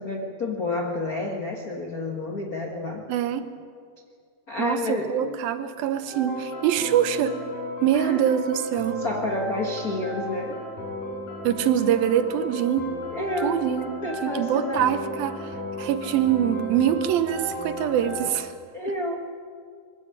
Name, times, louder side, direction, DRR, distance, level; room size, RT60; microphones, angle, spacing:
voice 1, 0.0-3.1 4.5-5.4 7.9-8.3 9.0-10.6 13.1-15.0 18.7-19.1, left 2 dB, 75° left, 1 dB, 0.8 m, -30 dB
voice 2, 3.1-3.5 4.6-7.4 7.8-9.0 11.4-12.9 13.4-18.5, right 10 dB, 75° right, 11 dB, 2.7 m, -24 dB
sound 1, 6.1-18.3, equal, 60° left, 6.8 m, -34 dB
22.0 x 16.0 x 8.7 m, 2.2 s
omnidirectional pair, 4.4 m